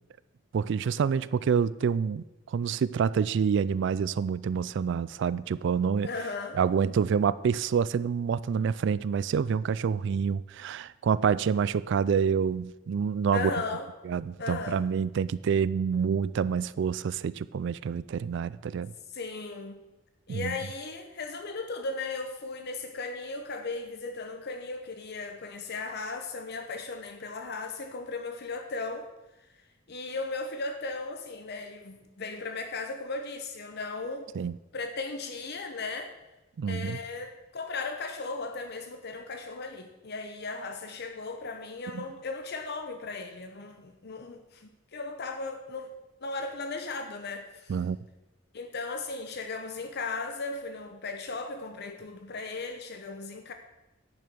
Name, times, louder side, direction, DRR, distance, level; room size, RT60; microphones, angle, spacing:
voice 1, 0.5-6.1 6.5-13.5 14.1-18.9 20.3-20.6 34.4-34.5 36.6-37.0 41.9-42.0 47.7-48.0, right 6 dB, 65° right, 18 dB, 0.3 m, -27 dB
voice 2, 6.0-6.6 13.3-13.9 14.4-14.8 19.1-19.8 20.3-29.1 29.5-34.3 34.7-36.1 36.7-45.9 46.2-47.8 48.5-53.5, left 3 dB, 55° left, 6 dB, 0.8 m, -36 dB
10.5 x 6.4 x 6.1 m, 1.0 s
head